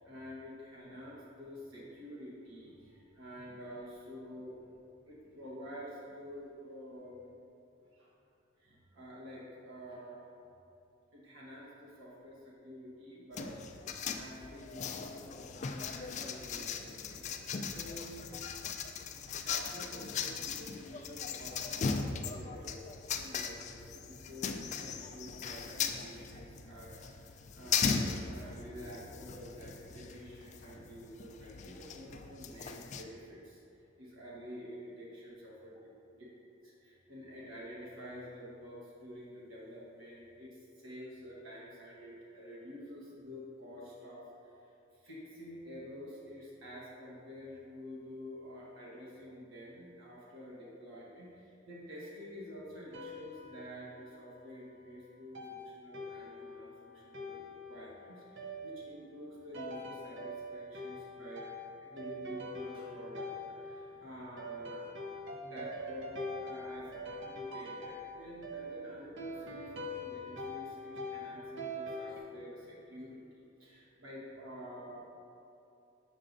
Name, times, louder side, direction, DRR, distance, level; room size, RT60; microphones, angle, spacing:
voice 1, 0.0-4.6 5.0-7.3 7.9-8.1 8.6-10.2 11.1-13.8 14.1-18.4 19.3-35.7 36.4-61.5 61.8-65.0 65.3-75.1, equal, 85° right, -6 dB, 1.2 m, -49 dB
sound 1, 13.3-33.0, left 6 dB, 35° left, 0.3 m, -38 dB
sound 2, 52.9-54.4 55.3-72.2, left 1 dB, 65° right, 0.6 m, -44 dB
7.4 x 6.5 x 2.6 m, 2.7 s
head